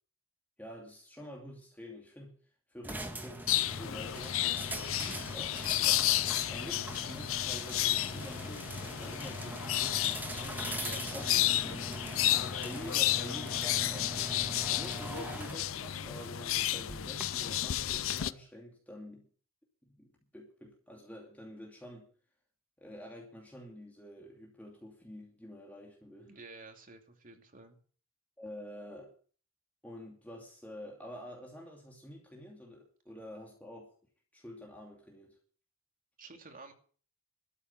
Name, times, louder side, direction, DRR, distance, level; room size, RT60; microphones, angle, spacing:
voice 1, 0.6-2.4 2.7-4.5 5.3-5.5 5.8-5.9 6.5-10.6 11.1-11.3 12.6-14.4 14.7-19.3 19.8-22.1 22.8-26.3 28.4-29.1 29.8-33.9 34.3-35.4, left 1 dB, 10° left, 2.7 m, -48 dB
sound 1, 2.8-17.2, right 1 dB, 10° right, 1.7 m, -42 dB
sound 2, 3.5-18.3, left 13 dB, 70° left, 0.6 m, -32 dB
voice 2, 4.9-5.2 10.8-11.9 26.3-27.8 36.2-36.7, right 3 dB, 40° right, 2.6 m, -51 dB
13.0 x 7.2 x 9.5 m
head